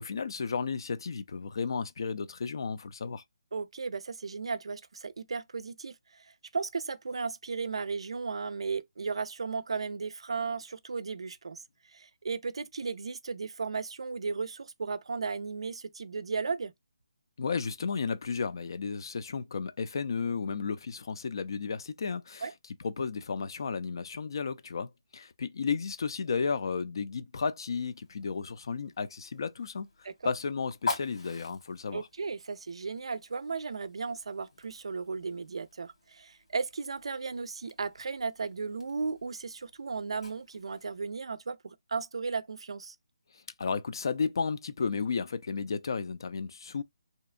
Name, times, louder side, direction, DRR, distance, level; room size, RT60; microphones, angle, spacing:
voice 1, 0.0-3.2 17.4-22.5 22.8-29.9 30.2-32.1 43.6-46.8, left 5 dB, 50° left, 0.4 m, -33 dB
voice 2, 3.5-11.6 11.9-16.7 22.4-22.5 30.0-30.3 31.9-43.0, right 4 dB, 70° right, 0.4 m, -35 dB
Fire, 27.7-41.0, left 4 dB, 80° left, 1.6 m, -45 dB
2.8 x 2.2 x 2.4 m
hypercardioid pair, 170°, 3 cm